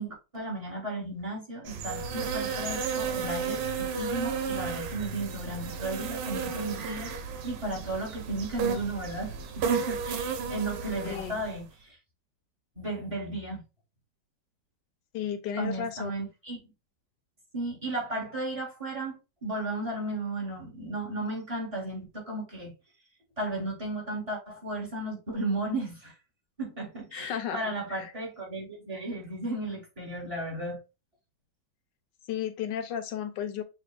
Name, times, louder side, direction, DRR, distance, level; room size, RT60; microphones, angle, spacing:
voice 1, 0.0-7.1 7.4-9.3 9.7-12.0 12.7-13.6 15.6-16.6 17.5-22.7 23.4-26.1 26.6-30.8, right 2 dB, 20° right, 1.6 m, -34 dB
sound 1, 1.6-11.6, right 6 dB, 85° right, 1.4 m, -33 dB
voice 2, 11.0-11.4 15.1-16.1 27.1-28.1 32.3-33.6, left 9 dB, 85° left, 1.4 m, -34 dB
6.9 x 2.6 x 2.4 m
omnidirectional pair, 1.9 m